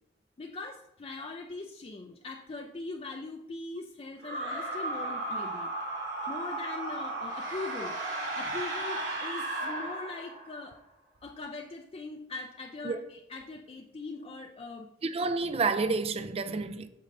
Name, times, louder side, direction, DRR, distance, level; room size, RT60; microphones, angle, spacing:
voice 1, 0.4-5.7 6.3-8.0 8.3-10.8 11.2-14.9, left 3 dB, 30° left, 0.4 m, -41 dB
sound 1, 4.2-10.6, right 2 dB, 85° right, 2.8 m, -35 dB
voice 2, 15.0-16.9, right 4 dB, 35° right, 0.4 m, -29 dB
8.2 x 6.6 x 2.6 m
head